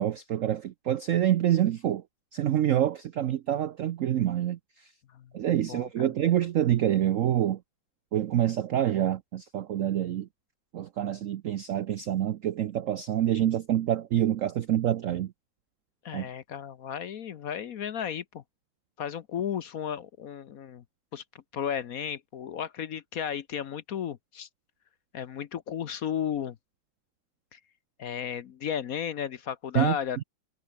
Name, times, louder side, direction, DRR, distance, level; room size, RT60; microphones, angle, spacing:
voice 1, 0.0-2.0 2.3-4.9 5.3-7.6 8.1-10.3 10.7-15.3 16.1-16.3 29.7-30.2, right 11 dB, 90° right, 0.7 m, -27 dB
voice 2, 5.7-6.1 16.0-18.4 19.0-20.8 21.1-21.2 21.5-24.5 25.1-26.6 27.5-27.6 28.0-30.2, left 8 dB, 60° left, 1.0 m, -34 dB
omnidirectional pair, 2.2 m